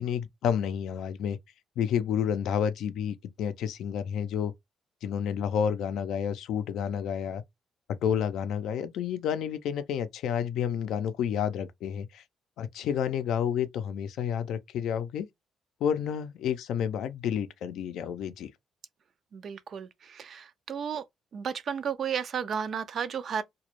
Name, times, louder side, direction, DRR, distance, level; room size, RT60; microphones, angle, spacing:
voice 1, 0.0-1.4 1.8-4.5 5.0-7.4 8.0-12.2 12.6-15.3 15.8-18.5, left 8 dB, 80° left, 0.3 m, -30 dB
voice 2, 19.3-21.0 21.3-23.4, right 7 dB, 55° right, 0.3 m, -33 dB
2.1 x 2.0 x 2.9 m
cardioid pair, 90°, 0 cm